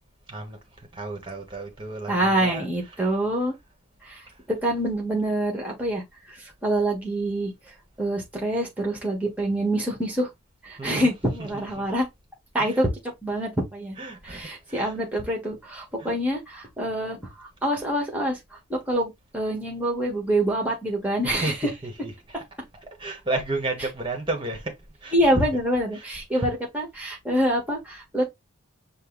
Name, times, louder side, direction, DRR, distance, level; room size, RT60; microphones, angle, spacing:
voice 1, 0.3-3.1 4.3-4.4 10.8-11.1 11.4-11.9 12.6-12.8 14.0-15.0 16.0-16.1 21.2-22.4 23.0-25.4 25.9-26.1 26.3-26.4, right 2 dB, 25° right, 1.3 m, -33 dB
voice 2, 2.1-3.5 4.0-6.0 6.3-7.5 8.0-10.3 10.6-12.0 12.5-12.9 13.2-14.0 14.3-17.2 17.6-18.4 18.7-21.5 25.1-28.2, right 1 dB, 5° right, 1.5 m, -26 dB
5.4 x 2.2 x 3.9 m
head